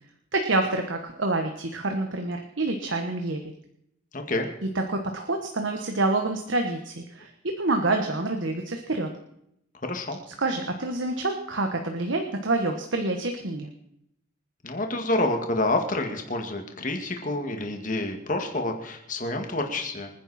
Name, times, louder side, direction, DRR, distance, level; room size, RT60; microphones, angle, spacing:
voice 1, 0.3-3.4 4.6-9.1 10.4-13.7, right 2 dB, 75° right, 4 dB, 1.4 m, -27 dB
voice 2, 4.1-4.5 9.8-10.2 14.6-20.1, left 2 dB, 40° left, 4 dB, 2.1 m, -28 dB
26.0 x 10.0 x 4.3 m, 0.77 s
head